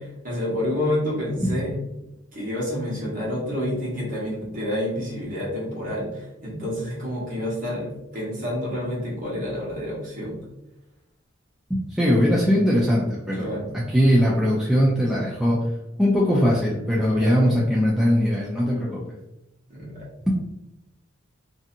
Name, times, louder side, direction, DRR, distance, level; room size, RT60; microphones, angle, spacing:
voice 1, 0.2-1.7 2.3-10.4 13.3-13.7 17.1-17.5 19.7-20.1, left 1 dB, 45° right, -6 dB, 1.1 m, -29 dB
voice 2, 11.7-15.6 16.0-19.0, equal, ahead, -6 dB, 0.3 m, -20 dB
2.7 x 2.6 x 2.5 m, 0.91 s
head